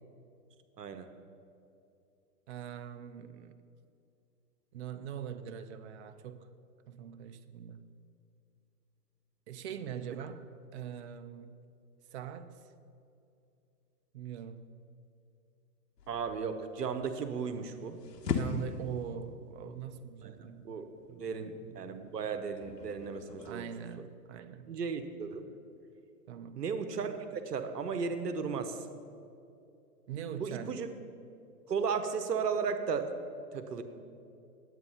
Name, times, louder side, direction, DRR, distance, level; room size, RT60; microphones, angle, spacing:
voice 1, 0.8-1.1 16.1-18.0 20.2-20.9 21.2-23.7 24.7-25.4 26.6-28.8 30.4-30.9 31.7-33.1 33.5-33.8, right 5 dB, 80° right, 1.0 m, -35 dB
voice 2, 2.5-3.5 4.7-6.5 6.9-7.9 9.5-11.6 12.1-12.6 14.1-14.7 18.2-20.7 21.1-21.8 23.4-24.7 26.3-26.6 30.1-30.8, right 8 dB, 45° right, 0.6 m, -42 dB
sound 1, 16.0-23.5, left 5 dB, 85° left, 1.1 m, -41 dB
9.7 x 8.0 x 5.6 m
hypercardioid pair, 125°, 48 cm